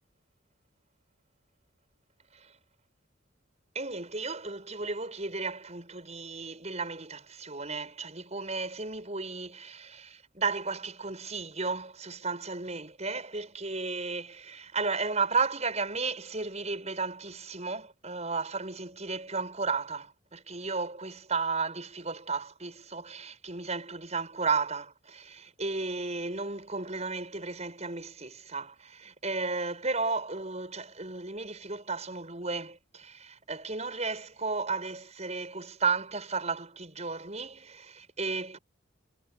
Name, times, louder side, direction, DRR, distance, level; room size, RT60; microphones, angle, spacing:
voice 1, 3.7-38.6, right 4 dB, 35° right, 7.3 m, -34 dB
head